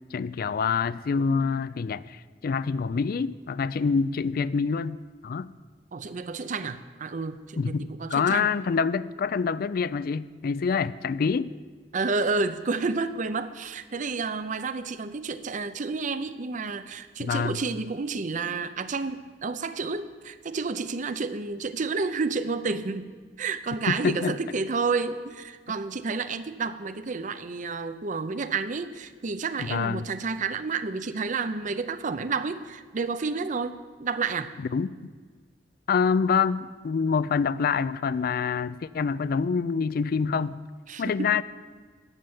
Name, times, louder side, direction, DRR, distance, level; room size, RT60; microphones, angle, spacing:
voice 1, 0.0-5.0 5.2-5.5 7.6-11.5 17.2-17.6 23.9-24.4 29.6-30.1 34.7-35.1 35.9-40.6 41.0-41.4, left 5 dB, 55° left, 17 dB, 0.4 m, -26 dB
voice 2, 5.9-8.5 11.9-23.1 23.4-34.5 40.9-41.3, right 4 dB, 45° right, 12 dB, 0.6 m, -30 dB
11.0 x 6.8 x 8.6 m, 1.5 s
head